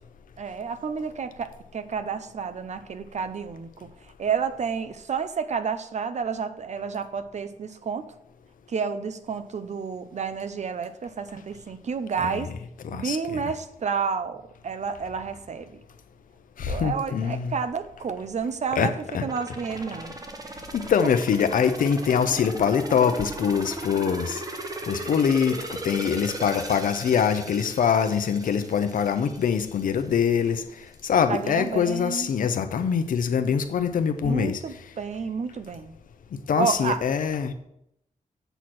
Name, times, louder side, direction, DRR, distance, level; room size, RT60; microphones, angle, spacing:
voice 1, 0.4-3.7 4.2-8.1 8.7-12.5 12.9-15.8 16.7-18.9 19.2-20.1 31.3-32.3 34.2-35.9 36.6-37.0, right 6 dB, 60° right, 11 dB, 0.7 m, -30 dB
voice 2, 12.8-13.4 16.6-17.6 18.8-19.2 20.7-24.4 24.9-25.6 25.8-30.6 31.0-34.6 36.5-37.5, left 7 dB, 90° left, 9 dB, 0.7 m, -24 dB
sound 1, 19.3-30.0 30.4-30.5, right 2 dB, 25° right, 1.0 m, -37 dB
8.0 x 4.3 x 6.1 m, 0.78 s
wide cardioid pair, 100°, 14 cm